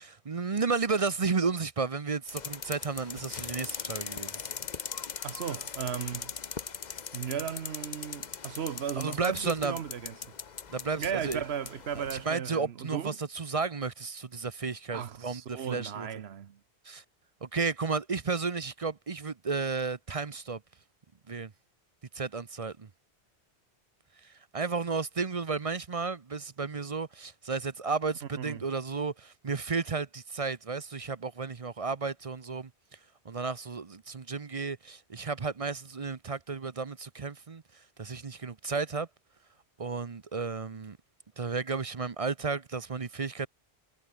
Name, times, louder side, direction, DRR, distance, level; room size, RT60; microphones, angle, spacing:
voice 1, 0.0-4.4 9.0-9.8 10.7-11.4 11.9-16.1 16.8-17.0 17.4-20.6 21.3-21.5 22.1-22.9 24.2-32.7 33.2-37.6 38.0-39.1 39.8-41.0 41.4-43.5, right 4 dB, 35° right, 0.8 m, -33 dB
sound 1, 2.3-12.3, left 6 dB, 45° left, 1.0 m, -40 dB
voice 2, 5.2-6.3 7.1-10.2 11.0-13.2 14.9-16.6 28.4-28.7, right 8 dB, 70° right, 1.1 m, -36 dB
omnidirectional pair, 1.1 m